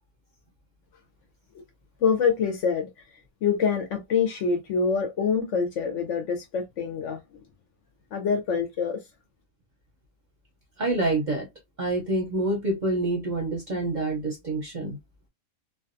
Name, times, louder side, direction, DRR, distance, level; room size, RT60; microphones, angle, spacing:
voice 1, 2.0-2.9 3.4-7.4 8.1-9.0, left 6 dB, 65° left, 0.9 m, -25 dB
voice 2, 10.8-11.5 11.8-15.0, right 2 dB, 40° right, 0.7 m, -27 dB
2.5 x 2.3 x 2.5 m
omnidirectional pair, 1.5 m